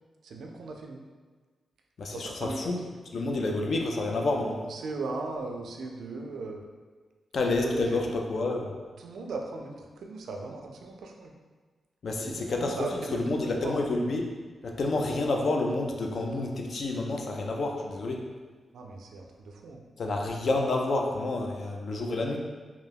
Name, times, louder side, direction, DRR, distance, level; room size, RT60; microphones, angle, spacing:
voice 1, 0.2-1.0 2.1-2.8 4.6-6.6 7.4-8.2 9.0-11.3 12.2-13.8 18.7-19.9, right 3 dB, 80° right, 2 dB, 0.3 m, -38 dB
voice 2, 2.0-2.8 3.1-4.6 7.3-8.8 12.0-12.8 13.1-14.2 14.6-18.2 20.0-22.4, left 2 dB, 45° left, 2 dB, 0.3 m, -29 dB
2.3 x 2.2 x 3.3 m, 1.4 s
wide cardioid pair, 170°, 0 cm